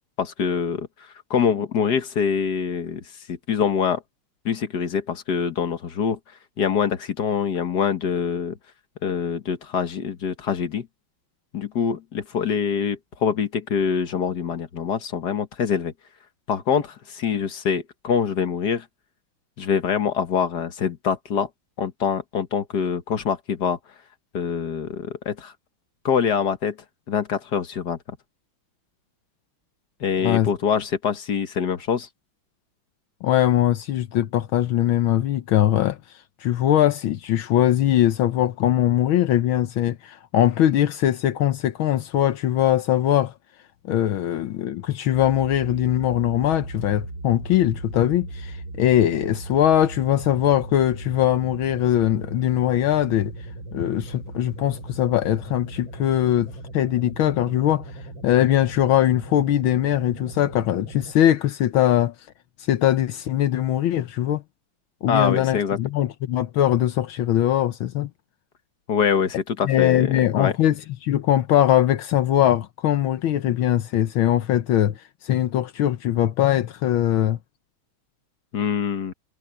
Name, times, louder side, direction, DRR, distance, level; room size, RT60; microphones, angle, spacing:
voice 1, 0.2-0.9 1.3-3.0 3.3-4.0 4.5-6.2 6.6-8.6 9.0-10.9 11.5-15.9 16.5-18.9 19.6-21.5 21.8-23.8 24.3-25.5 26.1-26.8 27.1-28.0 30.0-32.1 65.1-65.8 68.9-70.5 78.5-79.1, left 7 dB, 55° left, 1.8 m, -24 dB
voice 2, 33.2-36.0 36.4-43.3 43.9-53.3 53.7-57.9 58.2-62.1 62.7-64.4 65.0-68.1 69.6-77.4, left 12 dB, 75° left, 1.7 m, -21 dB
sound 1, 45.1-61.1, right 2 dB, 70° right, 6.8 m, -37 dB
omnidirectional pair, 2.3 m